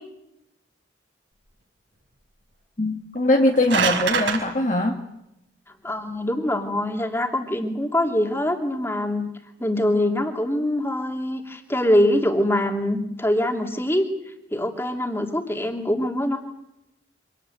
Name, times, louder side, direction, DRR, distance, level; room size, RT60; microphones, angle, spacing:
voice 1, 2.8-5.0, left 1 dB, 40° left, 2 dB, 1.8 m, -21 dB
sound 1, 3.2-4.4, right 6 dB, 70° right, 4.8 m, -24 dB
voice 2, 5.8-9.3 9.6-16.4, left 1 dB, 10° left, 4 dB, 2.7 m, -24 dB
25.5 x 18.5 x 9.2 m, 0.85 s
head